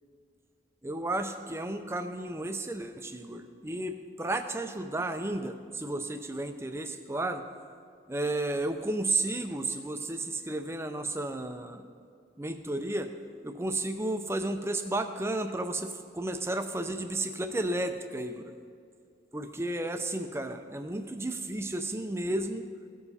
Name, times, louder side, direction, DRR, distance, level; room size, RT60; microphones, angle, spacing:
voice 1, 0.8-7.4 8.1-11.8 12.4-13.1 13.4-18.5 19.3-22.7, right 2 dB, 15° right, 8 dB, 0.5 m, -33 dB
17.0 x 7.0 x 4.2 m, 2.3 s
head